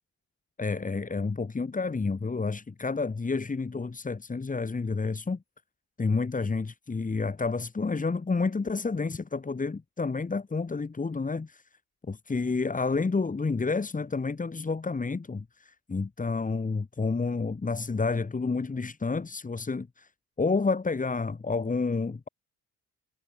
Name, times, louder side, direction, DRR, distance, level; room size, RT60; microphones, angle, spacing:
voice 1, 0.6-5.4 6.0-11.6 12.1-20.1 20.4-22.3, left 4 dB, 25° left, 4.1 m, -29 dB
cardioid pair, 90°, 30 cm